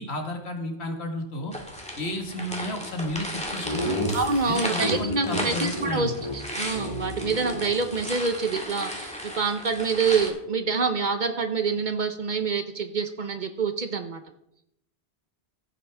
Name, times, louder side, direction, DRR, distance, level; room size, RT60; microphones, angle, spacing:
voice 1, 0.0-1.5 2.0-4.1 4.4-6.2, left 1 dB, 75° left, 4 dB, 1.9 m, -32 dB
sound 1, 1.5-10.3, equal, 5° left, 1.9 m, -35 dB
Laughter, 3.6-5.4 5.7-5.9 6.2-6.4 6.6-8.2, equal, 35° left, 2.9 m, -31 dB
voice 2, 4.1-14.2, right 4 dB, 50° right, 8 dB, 0.9 m, -26 dB
15.0 x 9.2 x 3.4 m, 0.79 s
omnidirectional pair, 1.1 m